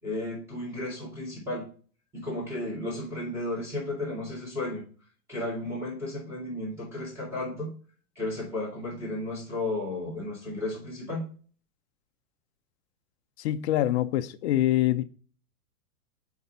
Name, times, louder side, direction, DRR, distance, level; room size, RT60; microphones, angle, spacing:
voice 1, 0.0-1.7 2.1-4.8 5.3-7.7 8.2-11.3, left 2 dB, 5° right, 3.6 m, -33 dB
voice 2, 13.4-15.0, left 13 dB, 45° left, 0.6 m, -25 dB
6.9 x 4.6 x 5.2 m
supercardioid pair, 155°, 47 cm